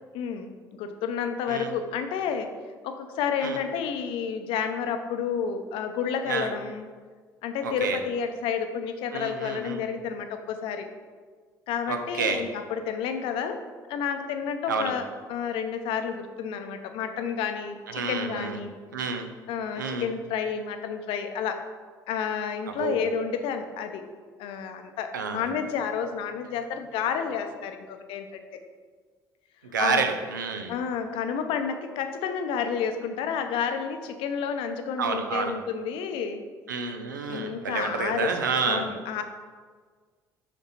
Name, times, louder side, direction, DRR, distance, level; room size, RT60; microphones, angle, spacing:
voice 1, 0.1-2.5 2.8-6.9 7.4-10.9 11.7-13.6 13.9-15.0 15.3-18.7 19.5-21.6 22.1-24.0 24.4-28.6 29.8-30.0 30.7-36.4 37.3-39.2, left 7 dB, 60° left, 7 dB, 0.6 m, -30 dB
voice 2, 7.6-8.0 9.1-9.9 11.9-12.4 14.7-14.9 17.9-18.6 18.9-19.3 19.7-20.1 22.8-23.0 25.1-25.5 29.6-30.7 35.0-35.6 36.7-38.8, right 5 dB, 85° right, 6 dB, 0.5 m, -29 dB
5.3 x 5.2 x 4.1 m, 1.5 s
figure-of-eight pair, 55°, 10 cm